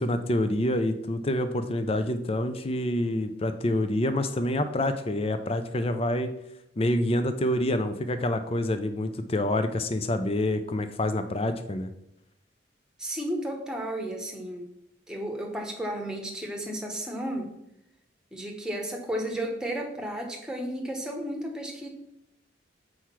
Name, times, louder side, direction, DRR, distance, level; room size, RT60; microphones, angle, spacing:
voice 1, 0.0-6.3 6.8-11.9, left 1 dB, 30° left, 9 dB, 0.5 m, -27 dB
voice 2, 13.0-14.7 15.1-17.5 18.3-21.9, right 1 dB, 5° right, 1 dB, 1.1 m, -33 dB
6.5 x 4.7 x 5.8 m, 0.81 s
head